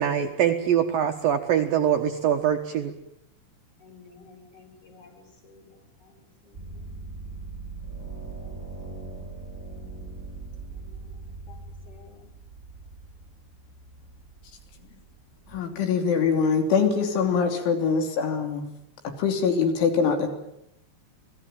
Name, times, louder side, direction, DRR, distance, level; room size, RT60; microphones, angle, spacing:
voice 1, 0.0-2.9, right 9 dB, 65° right, 5 dB, 2.5 m, -23 dB
voice 2, 3.8-6.9 8.4-9.3 10.7-11.6 11.9-12.3, left 4 dB, 30° left, 1 dB, 7.7 m, -54 dB
sound 1, 6.5-15.6, right 3 dB, 15° right, 4.8 m, -41 dB
voice 3, 15.5-18.7 19.1-20.3, left 5 dB, 80° left, 5 dB, 5.5 m, -23 dB
27.5 x 19.0 x 9.1 m, 0.79 s
omnidirectional pair, 5.4 m